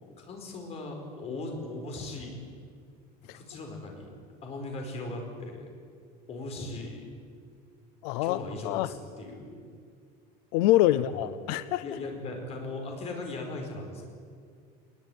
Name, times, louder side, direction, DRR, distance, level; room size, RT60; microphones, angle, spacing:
voice 1, 0.1-2.4 3.3-4.1 4.4-5.7 6.3-7.1 8.1-9.7 10.9-11.3 11.8-14.1, left 2 dB, 30° left, 3 dB, 4.8 m, -38 dB
voice 2, 8.0-8.9 10.5-11.8, left 15 dB, 90° left, 15 dB, 0.7 m, -25 dB
21.0 x 21.0 x 9.3 m, 2.2 s
cardioid pair, 175°, 20 cm